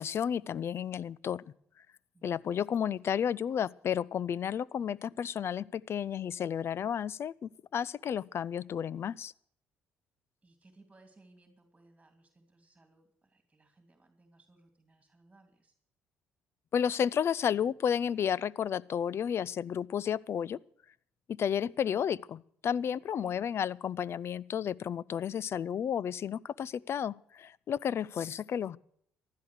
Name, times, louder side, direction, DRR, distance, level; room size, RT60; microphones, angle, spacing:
voice 1, 0.0-1.4 2.2-9.3 16.7-20.6 21.3-28.8, left 8 dB, 50° left, 0.5 m, -32 dB
voice 2, 2.1-2.5 10.4-15.7 23.2-23.5, right 2 dB, 15° right, 2.8 m, -62 dB
15.5 x 11.5 x 6.5 m
supercardioid pair, 65°, 5 cm